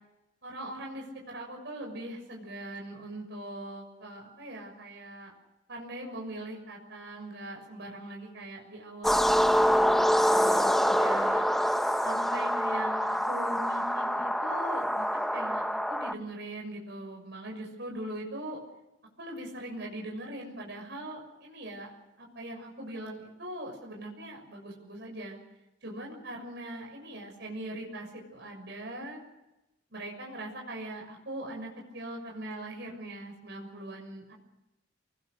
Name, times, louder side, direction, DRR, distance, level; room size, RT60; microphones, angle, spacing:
voice 1, 0.4-5.3 5.7-9.8 10.3-11.5 12.0-18.6 19.2-21.9 22.2-25.4 25.8-29.2 29.9-34.3, right 1 dB, 65° right, 0 dB, 6.5 m, -41 dB
sound 1, 9.0-16.1, equal, ahead, 0.9 m, -26 dB
29.0 x 20.5 x 6.5 m, 0.96 s
head